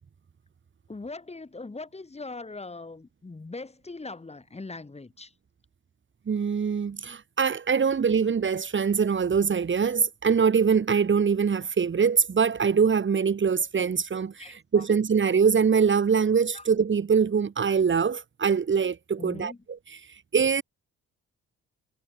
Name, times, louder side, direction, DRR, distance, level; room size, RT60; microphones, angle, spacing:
voice 1, 0.9-5.3 14.4-14.8 16.5-16.7 19.2-19.6, left 3 dB, 20° left, 4.7 m, -40 dB
voice 2, 6.3-19.5 20.3-20.6, right 6 dB, 40° right, 2.9 m, -23 dB
cardioid pair, 90°, 30 cm